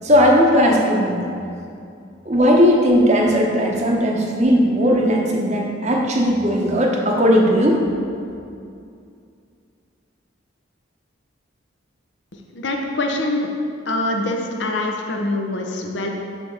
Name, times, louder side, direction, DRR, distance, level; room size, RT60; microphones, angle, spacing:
voice 1, 0.0-1.3 2.2-7.8, equal, 35° right, 0 dB, 0.9 m, -17 dB
voice 2, 12.5-13.5 13.9-16.1, left 2 dB, 65° left, 1 dB, 0.8 m, -24 dB
7.8 x 3.5 x 6.6 m, 2.4 s
head